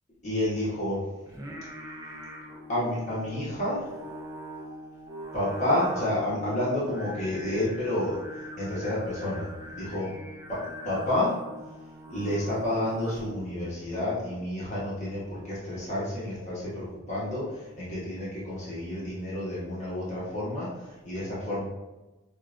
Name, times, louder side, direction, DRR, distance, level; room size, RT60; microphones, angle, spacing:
voice 1, 0.2-1.0 2.7-3.9 5.3-8.2 8.6-10.1 10.5-10.6 10.8-11.3 12.1-21.7, left 1 dB, 35° left, -8 dB, 1.0 m, -30 dB
Singing, 1.3-13.4, equal, 15° right, 0.5 m, -42 dB
5.4 x 2.3 x 2.5 m, 1.1 s
head